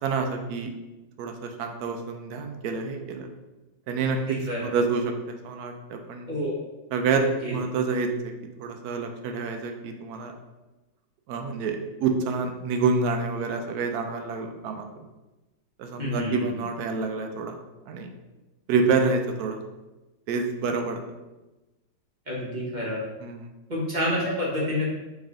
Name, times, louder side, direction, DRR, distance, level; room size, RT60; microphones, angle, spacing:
voice 1, 0.0-0.7 1.2-3.3 3.9-5.1 5.4-6.3 6.9-7.3 7.5-8.3 8.6-10.3 11.3-14.9 15.8-17.6 17.9-18.1 18.7-19.6 20.3-21.0 23.2-23.5, right 4 dB, 70° right, 5 dB, 1.0 m, -27 dB
voice 2, 4.3-4.7 6.3-6.5 7.4-7.5 16.0-16.5 22.3-23.0 23.7-24.9, left 1 dB, 30° right, -5 dB, 1.1 m, -28 dB
4.0 x 3.5 x 3.7 m, 1.1 s
omnidirectional pair, 1.9 m